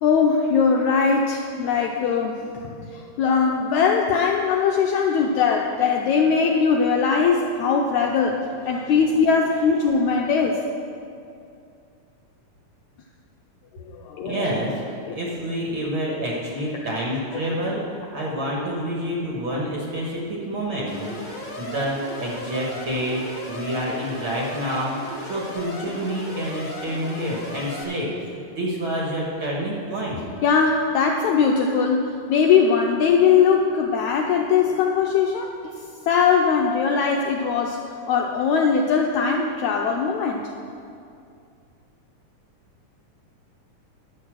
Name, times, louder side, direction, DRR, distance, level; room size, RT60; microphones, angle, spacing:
voice 1, 0.0-10.6 13.8-14.6 15.0-15.2 30.4-37.8 38.1-40.4, left 6 dB, 85° left, 1 dB, 1.7 m, -20 dB
voice 2, 8.7-9.1 14.2-14.7 15.1-28.1 28.5-30.2, equal, 50° right, -3 dB, 1.7 m, -28 dB
Alarm, 20.9-27.8, left 1 dB, 30° left, 1.7 m, -36 dB
11.5 x 7.3 x 6.2 m, 2.4 s
omnidirectional pair, 3.9 m